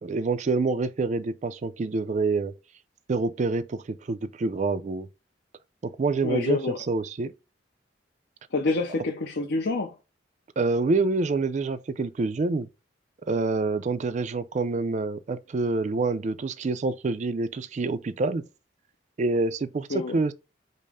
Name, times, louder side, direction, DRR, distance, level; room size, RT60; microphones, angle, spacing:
voice 1, 0.0-2.6 3.1-5.1 5.8-6.6 6.9-7.3 10.6-12.7 13.3-18.5 19.2-20.3, right 3 dB, 40° right, 0.3 m, -27 dB
voice 2, 6.2-6.8 8.5-9.9 19.9-20.2, left 3 dB, 60° left, 0.6 m, -27 dB
5.3 x 2.0 x 4.8 m
head